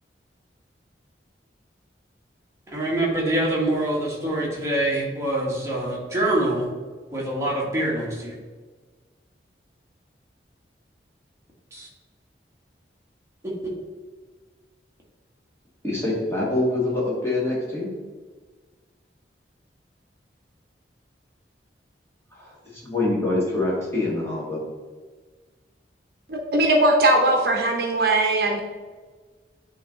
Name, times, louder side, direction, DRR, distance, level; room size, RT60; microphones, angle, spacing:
voice 1, 2.7-6.7 7.1-8.4 11.7-11.9 13.4-13.5, right 1 dB, 15° right, -4 dB, 1.5 m, -25 dB
voice 2, 15.8-17.9 22.4-24.6, left 2 dB, 15° left, -6 dB, 1.9 m, -25 dB
voice 3, 26.3-28.6, right 1 dB, 55° right, 2 dB, 0.8 m, -20 dB
9.3 x 3.3 x 3.8 m, 1.4 s
head